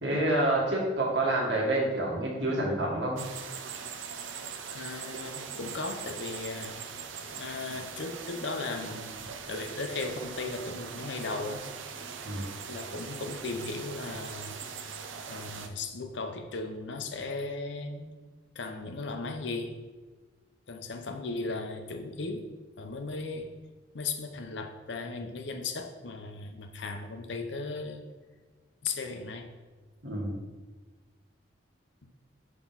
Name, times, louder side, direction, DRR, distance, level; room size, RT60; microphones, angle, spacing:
voice 1, 0.0-3.2 12.2-12.5 30.0-30.3, right 1 dB, 70° right, -2 dB, 1.6 m, -28 dB
sound 1, 3.2-15.7, right 6 dB, 90° right, 0.6 m, -41 dB
voice 2, 4.7-6.8 7.3-11.7 12.6-14.6 15.3-18.1 18.5-19.8 20.7-22.5 22.8-23.5 23.9-28.1 28.8-29.5, left 3 dB, 65° left, 6 dB, 0.7 m, -36 dB
5.9 x 3.7 x 5.6 m, 1.3 s
head